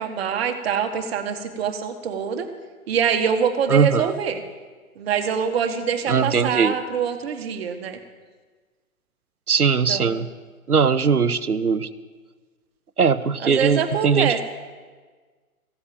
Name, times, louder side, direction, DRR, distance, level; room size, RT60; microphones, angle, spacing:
voice 1, 0.0-2.5 2.9-4.4 5.0-8.0 9.9-10.2 13.4-14.4, right 7 dB, 45° right, 7 dB, 1.5 m, -24 dB
voice 2, 3.7-4.1 6.1-6.8 9.5-10.3 10.7-11.9 13.0-14.4, right 5 dB, 90° right, 15 dB, 0.8 m, -20 dB
15.0 x 8.6 x 7.7 m, 1.4 s
figure-of-eight pair, 125°, 43 cm